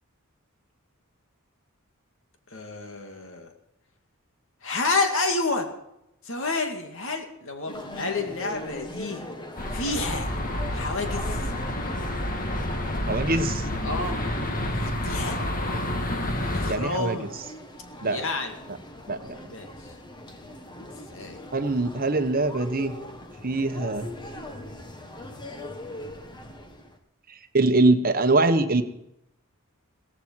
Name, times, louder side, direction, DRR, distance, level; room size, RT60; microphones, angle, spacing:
voice 1, 2.5-3.5 4.6-5.7 6.2-9.2 9.7-10.3 10.7-11.5 13.8-14.2 14.7-15.4 16.5-17.3 18.0-18.6 19.5-19.9 21.1-21.4, left 3 dB, 65° left, 4 dB, 2.3 m, -29 dB
sound 1, 7.7-27.0, left 1 dB, 20° left, 1.6 m, -41 dB
sound 2, 9.6-16.8, left 1 dB, 40° left, 1.8 m, -29 dB
voice 2, 13.1-13.6 16.7-17.2 18.0-18.2 19.1-19.2 21.5-22.9 23.4-24.1 27.5-28.8, right 2 dB, 45° right, 8 dB, 1.2 m, -22 dB
16.5 x 15.0 x 4.7 m, 0.85 s
head